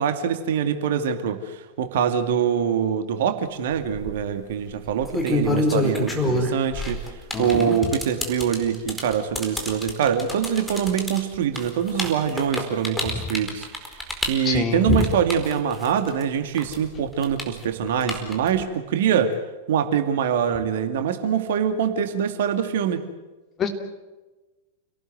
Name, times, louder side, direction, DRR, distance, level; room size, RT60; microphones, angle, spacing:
voice 1, 0.0-7.0 7.4-13.7 14.3-19.4 19.7-23.1, right 8 dB, 55° right, 8 dB, 2.3 m, -24 dB
sound 1, 3.8-4.1 4.9-16.2 16.5-18.6, left 1 dB, 5° left, 4.6 m, -27 dB
voice 2, 7.3-7.8 14.4-15.0 23.6-23.7, left 5 dB, 25° left, 5 dB, 3.1 m, -24 dB
29.0 x 18.5 x 7.9 m, 1.2 s
figure-of-eight pair, 95°, 0 cm